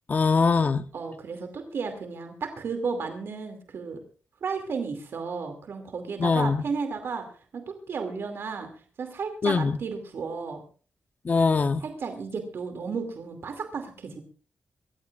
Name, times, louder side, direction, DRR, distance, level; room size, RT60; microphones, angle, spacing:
voice 1, 0.1-0.8 6.2-6.6 9.4-9.8 11.2-11.8, left 4 dB, 40° left, 0.8 m, -22 dB
voice 2, 0.9-4.0 4.4-8.7 9.0-10.6 11.8-14.2, right 5 dB, 65° right, 2.5 m, -33 dB
24.5 x 15.0 x 2.5 m
wide cardioid pair, 145°, 4 cm